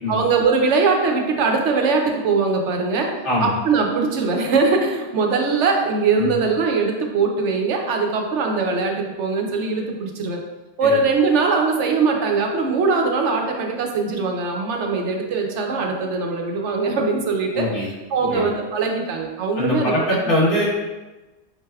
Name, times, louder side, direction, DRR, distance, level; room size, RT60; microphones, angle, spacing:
voice 1, 0.1-3.1 3.4-10.4 10.8-20.2, right 4 dB, 85° right, 2 dB, 1.0 m, -21 dB
voice 2, 17.5-17.9 18.2-18.4 19.6-20.6, left 1 dB, 90° left, -6 dB, 1.7 m, -22 dB
5.8 x 3.3 x 2.2 m, 1.1 s
omnidirectional pair, 1.2 m